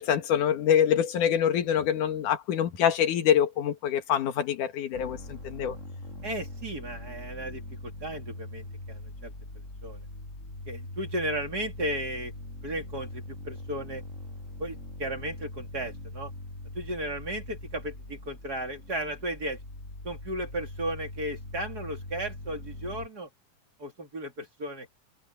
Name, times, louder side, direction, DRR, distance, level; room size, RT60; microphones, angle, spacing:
voice 1, 0.0-5.8, left 9 dB, 85° left, 3.1 m, -25 dB
sound 1, 4.9-23.1, left 1 dB, 20° left, 7.3 m, -42 dB
voice 2, 6.2-9.3 9.8-10.0 10.7-12.3 12.6-14.0 14.6-16.3 16.7-19.6 20.0-23.3 23.8-24.9, right 1 dB, 30° right, 3.0 m, -35 dB
omnidirectional pair, 3.5 m